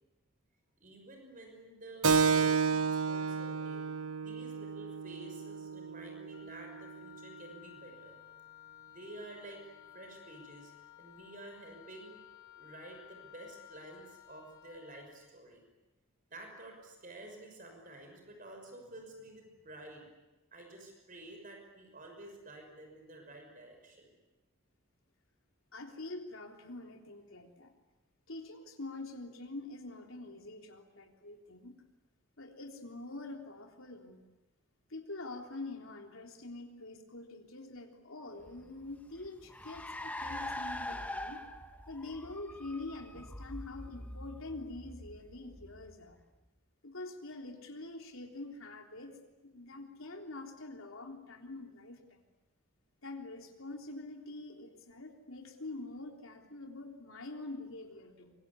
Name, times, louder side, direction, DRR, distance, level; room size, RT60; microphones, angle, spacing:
voice 1, 0.8-3.9 4.2-8.2 8.9-9.6 9.9-10.7 11.0-12.2 12.6-15.6 16.3-20.1 20.5-24.1, right 1 dB, 40° right, 3 dB, 5.9 m, -50 dB
Keyboard (musical), 2.0-7.1, right 5 dB, 85° right, 1.0 m, -31 dB
Wind instrument woodwind instrument, 6.3-15.2, left 13 dB, 45° left, 5.6 m, -56 dB
voice 2, 25.7-27.7 28.3-31.7 32.4-34.2 34.9-41.4 41.9-46.2 46.8-49.2 49.5-52.2 53.0-58.3, left 2 dB, 70° left, 3 dB, 3.6 m, -45 dB
Car, 38.4-46.2, left 1 dB, 5° left, 1.1 m, -44 dB
25.0 x 23.5 x 9.8 m, 1.0 s
head